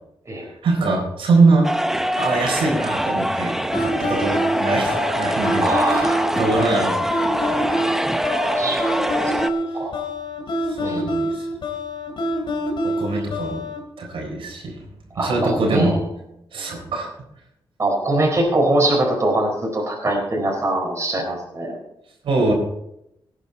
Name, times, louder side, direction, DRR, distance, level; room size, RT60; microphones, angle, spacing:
voice 1, 0.4-1.7 2.2-7.0 10.6-11.5 12.8-13.6 14.0-14.8 15.2-15.9 16.5-17.1 22.2-22.5, right 3 dB, 85° right, 0 dB, 4.0 m, -22 dB
sound 1, 1.6-9.5, equal, 5° right, 0.6 m, -23 dB
sound 2, 3.7-13.8, equal, 65° left, 2.6 m, -26 dB
voice 2, 5.6-6.5 8.5-9.5 9.7-10.0 10.8-11.0 15.2-16.0 16.5-16.6 17.8-21.8, right 1 dB, 30° right, 0 dB, 4.3 m, -23 dB
17.5 x 9.2 x 4.1 m, 0.80 s
wide cardioid pair, 110°, 9 cm